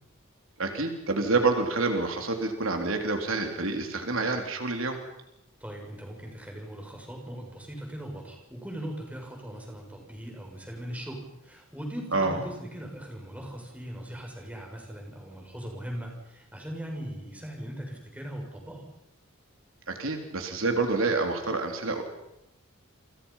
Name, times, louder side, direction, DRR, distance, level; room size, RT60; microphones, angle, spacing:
voice 1, 0.6-5.0 12.1-12.4 19.9-22.0, right 3 dB, 75° right, 4 dB, 3.7 m, -27 dB
voice 2, 5.6-18.8, equal, 5° right, 0 dB, 6.7 m, -39 dB
30.0 x 26.5 x 5.8 m, 0.83 s
head